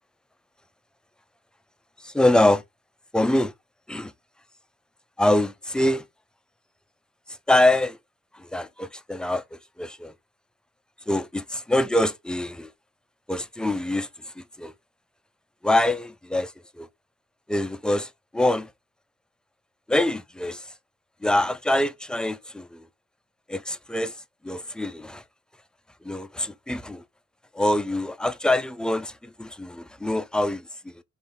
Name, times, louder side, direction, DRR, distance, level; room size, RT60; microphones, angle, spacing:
voice 1, 2.0-2.6 3.1-3.5 3.9-4.1 5.2-6.0 7.5-8.0 8.3-9.4 9.8-10.1 11.1-12.7 13.3-14.1 14.6-14.7 15.6-16.5 16.8-16.9 17.5-18.7 19.9-20.7 21.2-22.8 23.5-24.1 24.4-25.2 26.0-27.0 27.5-30.6, left 1 dB, 5° left, 0.4 m, -24 dB
3.5 x 2.6 x 4.0 m
cardioid pair, 90°, 30 cm